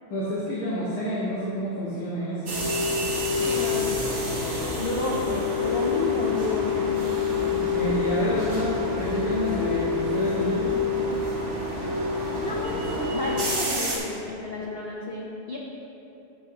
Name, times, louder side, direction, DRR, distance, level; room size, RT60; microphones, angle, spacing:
voice 1, 0.1-2.6 7.5-10.8, equal, 80° left, -10 dB, 2.1 m, -29 dB
sound 1, 2.5-14.0, left 4 dB, 65° right, 2.1 m, -27 dB
voice 2, 3.4-4.2 4.8-6.9 12.4-15.6, left 2 dB, 50° left, -4 dB, 0.8 m, -31 dB
11.5 x 7.2 x 2.9 m, 2.9 s
omnidirectional pair, 1.6 m